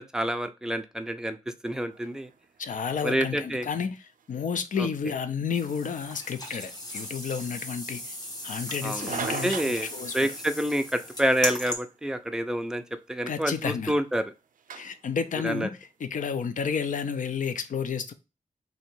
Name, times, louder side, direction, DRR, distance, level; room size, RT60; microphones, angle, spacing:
voice 1, 0.0-2.3 3.0-3.7 4.8-4.9 8.8-9.9 10.1-14.3 15.4-15.7, right 1 dB, 5° right, 0.4 m, -28 dB
sound 1, 1.9-17.0, right 7 dB, 80° right, 0.4 m, -45 dB
voice 2, 2.6-4.0 4.3-8.1 8.4-10.1 13.3-13.9 14.7-15.7 16.0-18.1, left 6 dB, 70° left, 0.5 m, -31 dB
sound 2, 5.5-11.7, left 1 dB, 30° left, 1.1 m, -37 dB
3.0 x 2.8 x 4.4 m
wide cardioid pair, 110°, 14 cm